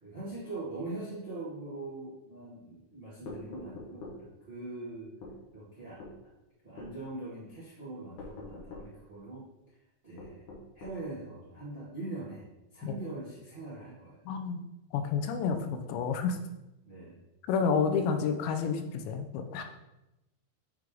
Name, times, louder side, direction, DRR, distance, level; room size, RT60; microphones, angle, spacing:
voice 1, 0.0-5.1 5.5-6.0 6.6-9.5 10.0-10.4 10.7-12.5 12.7-14.2 16.8-17.2, right 2 dB, 50° right, -9 dB, 0.6 m, -42 dB
sound 1, 3.3-4.2 5.2-5.4 6.0-6.2 6.8-7.0 8.2-8.9 10.2-11.0, left 2 dB, 60° left, 2.2 m, -44 dB
voice 2, 14.3-14.7 14.9-16.4 17.5-19.6, left 6 dB, 85° left, 6 dB, 2.9 m, -30 dB
9.5 x 3.5 x 3.8 m, 0.95 s
omnidirectional pair, 5.1 m